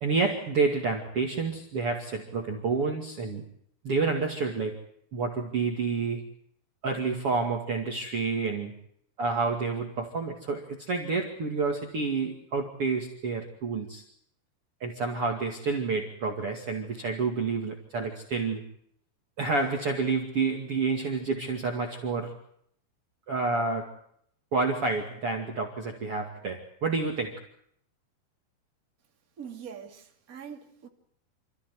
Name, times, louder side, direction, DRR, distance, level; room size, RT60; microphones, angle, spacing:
voice 1, 0.0-3.4 3.8-4.8 5.1-6.2 6.8-8.7 9.2-14.0 14.8-18.6 19.4-22.4 23.3-24.0 24.5-27.5, right 4 dB, 40° right, 2.8 m, -29 dB
voice 2, 29.4-30.9, right 7 dB, 25° right, 2.8 m, -43 dB
28.5 x 15.0 x 9.6 m
omnidirectional pair, 4.6 m